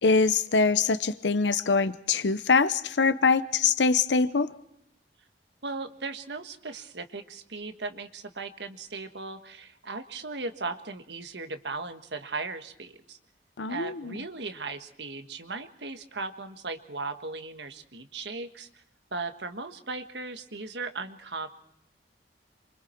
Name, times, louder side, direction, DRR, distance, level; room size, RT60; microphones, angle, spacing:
voice 1, 0.0-4.5 13.6-14.2, left 4 dB, 85° left, 14 dB, 0.8 m, -24 dB
voice 2, 5.6-13.2 13.7-18.8 19.1-21.5, right 3 dB, 75° right, 7 dB, 1.5 m, -37 dB
27.5 x 24.5 x 4.5 m, 0.74 s
head